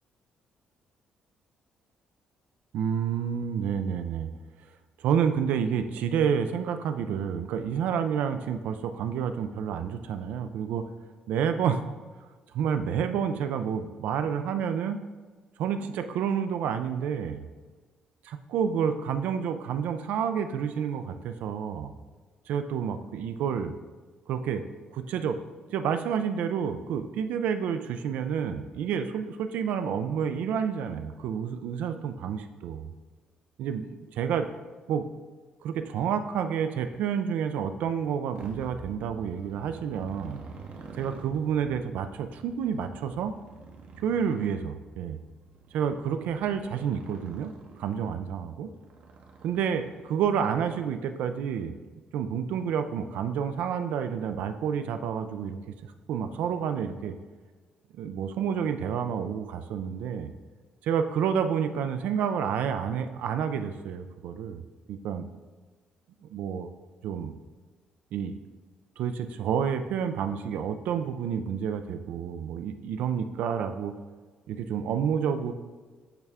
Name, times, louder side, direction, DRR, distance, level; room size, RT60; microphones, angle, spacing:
voice 1, 2.7-4.3 5.0-10.9 11.3-11.8 12.5-15.0 15.6-17.4 18.2-21.9 22.5-23.7 24.3-24.6 24.9-25.4 25.7-32.9 33.6-34.5 34.9-35.0 35.6-40.4 41.0-43.3 44.0-45.2 45.7-48.7 49.4-51.7 52.1-57.2 57.9-60.3 60.8-64.6 64.9-65.3 66.3-66.7 67.0-67.3 68.1-68.3 69.0-74.0 74.5-75.5, right 7 dB, 80° right, 8 dB, 0.3 m, -29 dB
Motorcycle, 38.3-50.4, right 4 dB, 60° right, 0.8 m, -48 dB
7.9 x 3.5 x 3.5 m, 1.4 s
cardioid pair, 135°, 3 cm